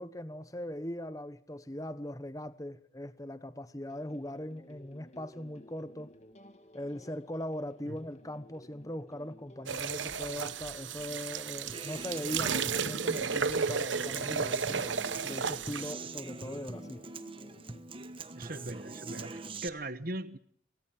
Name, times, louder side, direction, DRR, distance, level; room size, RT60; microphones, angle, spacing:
voice 1, 0.0-6.1 6.7-17.0, left 1 dB, 15° left, 1.2 m, -40 dB
sound 1, 3.9-17.8, left 1 dB, 35° left, 2.7 m, -55 dB
sound 2, 9.7-15.9, right 6 dB, 75° right, 1.1 m, -33 dB
Human voice / Acoustic guitar, 11.7-19.7, right 3 dB, 30° right, 1.3 m, -43 dB
voice 2, 18.3-20.4, right 1 dB, 50° right, 1.2 m, -40 dB
27.5 x 18.5 x 9.0 m
head